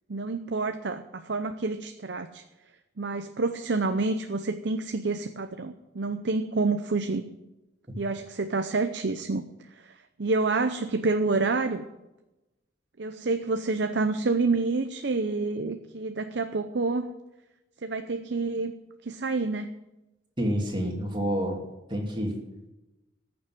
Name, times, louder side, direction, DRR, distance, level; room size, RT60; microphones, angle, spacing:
voice 1, 0.1-2.4 3.0-7.2 8.0-9.4 9.8-9.9 10.2-11.8 13.0-17.1 17.8-18.7 19.0-19.7, right 3 dB, 65° right, 8 dB, 0.7 m, -28 dB
voice 2, 20.4-21.6 21.9-22.3, equal, 25° right, 0 dB, 2.7 m, -28 dB
14.5 x 7.1 x 9.9 m, 1.0 s
head